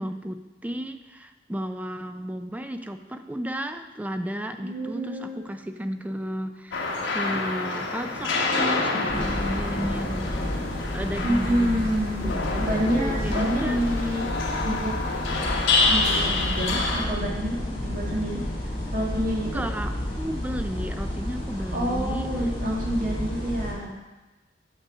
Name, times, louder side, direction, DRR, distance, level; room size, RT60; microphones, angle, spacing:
voice 1, 0.0-10.5 10.9-11.9 12.2-13.8 19.4-22.3 23.8-24.0, equal, 10° right, 7 dB, 0.4 m, -33 dB
voice 2, 4.6-5.4 11.2-12.3 12.6-14.3 14.6-15.0 15.3-15.4 15.8-18.4 18.9-19.6 21.7-24.0, equal, 50° right, -4 dB, 2.0 m, -28 dB
sound 1, 6.7-17.1, left 3 dB, 85° left, 1.3 m, -27 dB
sound 2, 9.1-23.7, left 1 dB, 25° left, 3.1 m, -31 dB
8.9 x 6.8 x 5.5 m, 1.1 s
head